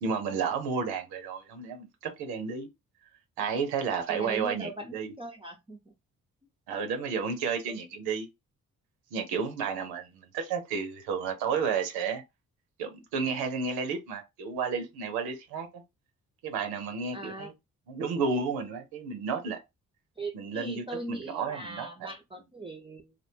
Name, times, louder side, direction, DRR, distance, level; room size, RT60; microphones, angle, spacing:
voice 1, 0.0-2.7 3.4-5.1 6.7-8.3 9.1-12.2 12.8-15.8 16.4-17.5 17.9-19.6 20.3-22.1, right 5 dB, 90° right, 0.6 m, -32 dB
voice 2, 4.1-5.9 7.7-7.8 17.1-17.5 20.2-23.1, right 2 dB, 15° right, 0.5 m, -40 dB
2.5 x 2.2 x 2.6 m
supercardioid pair, 45°, 37 cm